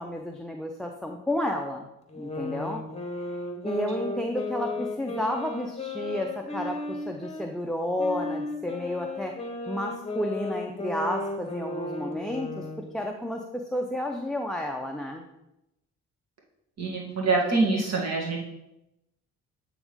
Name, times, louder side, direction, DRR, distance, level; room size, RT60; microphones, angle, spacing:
voice 1, 0.0-1.9 2.2-2.8 3.6-9.4 9.7-15.2, left 1 dB, ahead, 3 dB, 0.5 m, -31 dB
sound 1, 2.1-7.5 8.0-12.9, left 2 dB, 20° left, 1.0 m, -34 dB
voice 2, 16.8-18.4, right 3 dB, 60° right, -2 dB, 2.0 m, -25 dB
8.6 x 3.6 x 3.6 m, 0.89 s
cardioid pair, 90°, 30 cm